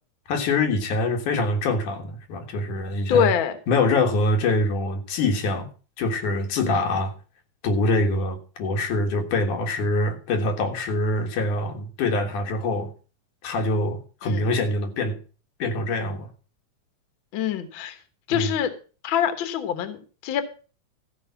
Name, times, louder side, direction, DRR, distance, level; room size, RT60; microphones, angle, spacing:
voice 1, 0.3-3.3 3.7-5.7 6.0-7.1 7.6-12.9 13.4-15.2 15.6-16.3 18.3-18.5, left 2 dB, 85° left, 4 dB, 3.1 m, -24 dB
voice 2, 3.1-3.6 14.2-14.5 17.3-18.0 18.3-18.7 19.0-20.4, left 8 dB, 55° left, 9 dB, 1.6 m, -24 dB
14.0 x 4.8 x 7.0 m, 0.36 s
omnidirectional pair, 3.4 m